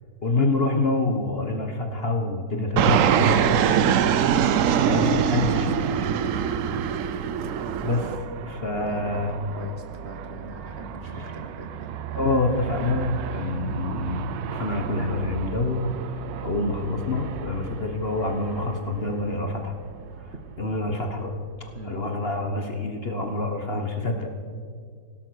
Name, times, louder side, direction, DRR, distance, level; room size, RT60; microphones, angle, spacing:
voice 1, 0.2-3.8 4.7-6.0 7.8-9.3 11.1-11.2 12.1-19.7 20.2-21.3 21.8-24.4, left 2 dB, 40° left, 4 dB, 1.2 m, -27 dB
Fixed-wing aircraft airplane, 2.8-8.2, right 8 dB, 65° right, 0.8 m, -22 dB
Aircraft, 4.9-21.9, right 7 dB, 80° right, 1.4 m, -37 dB
voice 2, 8.7-9.1 9.5-11.9 20.3-20.4 21.7-22.0, right 3 dB, 40° right, 4 dB, 1.2 m, -41 dB
17.0 x 12.0 x 6.3 m, 2.1 s
omnidirectional pair, 1.9 m